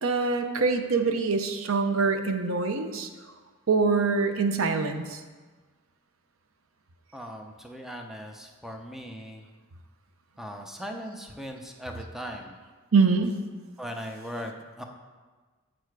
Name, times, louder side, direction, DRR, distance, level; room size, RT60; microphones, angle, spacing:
voice 1, 0.0-3.1 3.7-5.2 12.9-13.4, right 4 dB, 85° right, 7 dB, 0.7 m, -24 dB
voice 2, 7.1-9.4 10.4-12.5 13.8-14.8, equal, ahead, 3 dB, 0.5 m, -39 dB
7.5 x 6.8 x 4.7 m, 1.4 s
head